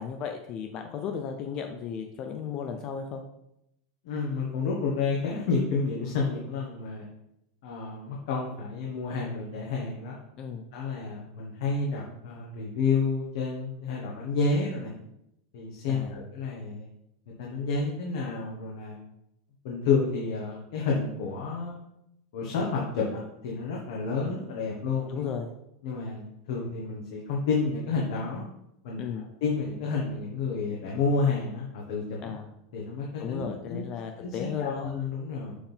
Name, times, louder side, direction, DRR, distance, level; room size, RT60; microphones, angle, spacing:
voice 1, 0.0-3.2 10.4-10.6 15.9-16.2 25.1-25.5 29.0-29.3 32.2-32.5 33.2-34.9, left 7 dB, 30° left, 5 dB, 0.5 m, -35 dB
voice 2, 4.0-7.1 7.6-10.2 10.7-14.9 15.5-16.9 17.4-19.0 19.6-21.8 22.3-25.3 25.8-28.4 28.8-29.0 29.4-32.3 32.7-33.8 34.2-35.5, left 4 dB, 55° left, -2 dB, 1.4 m, -30 dB
6.8 x 3.7 x 5.7 m, 0.81 s
supercardioid pair, 175°, 2 cm